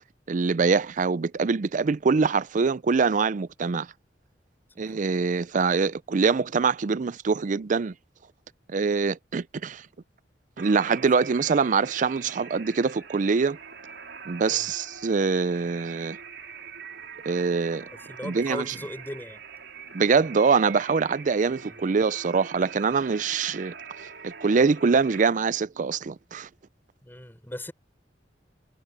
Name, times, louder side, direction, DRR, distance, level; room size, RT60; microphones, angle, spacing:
voice 1, 0.3-3.9 4.8-7.9 8.7-9.8 10.6-13.6 14.3-16.2 17.3-17.9 18.2-18.7 19.9-26.5, right 5 dB, 45° right, 0.5 m, -24 dB
sound 1, 10.6-25.3, right 6 dB, 85° right, 3.9 m, -43 dB
voice 2, 14.4-14.7 18.1-19.4 21.6-21.8 27.0-27.7, left 1 dB, 10° left, 5.8 m, -38 dB
head